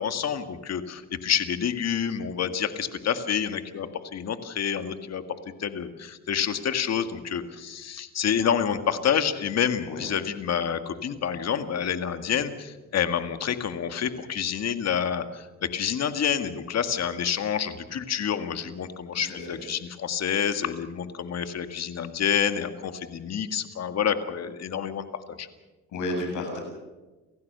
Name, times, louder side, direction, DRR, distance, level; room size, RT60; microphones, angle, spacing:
voice 1, 0.0-5.2 5.6-25.5, left 8 dB, 60° left, 9 dB, 1.9 m, -28 dB
voice 2, 19.1-19.6 25.9-26.6, left 2 dB, 80° left, 3 dB, 7.9 m, -32 dB
29.5 x 15.5 x 6.8 m, 1.2 s
cardioid pair, 90°, 30 cm